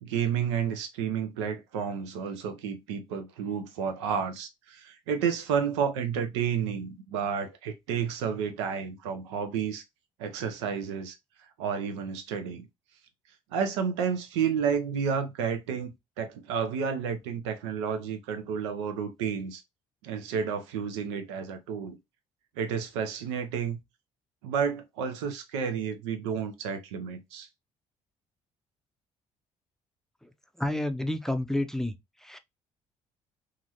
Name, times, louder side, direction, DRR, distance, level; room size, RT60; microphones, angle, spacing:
voice 1, 0.0-9.8 10.2-11.1 11.6-12.6 13.5-19.6 20.0-22.0 22.6-23.8 24.4-27.5, right 7 dB, 90° right, 0.6 m, -31 dB
voice 2, 30.6-32.0 32.2-32.4, left 1 dB, 5° left, 0.5 m, -29 dB
2.9 x 2.5 x 2.6 m
hypercardioid pair, 60°, 14 cm